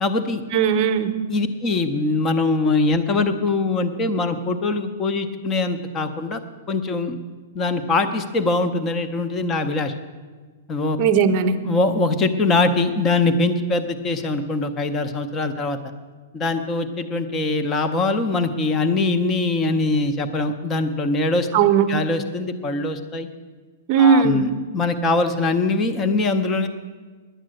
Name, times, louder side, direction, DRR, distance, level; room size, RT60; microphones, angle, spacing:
voice 1, 0.0-0.4 1.3-6.4 6.7-7.2 7.5-9.9 10.7-11.0 11.7-15.8 16.3-21.5 21.9-23.3 24.0-26.7, left 3 dB, 15° left, 9 dB, 0.7 m, -22 dB
voice 2, 0.5-1.1 11.0-11.6 21.5-21.9 23.9-24.4, right 7 dB, 30° right, 8 dB, 0.8 m, -17 dB
10.0 x 9.6 x 7.7 m, 1.4 s
hypercardioid pair, 170°, 0 cm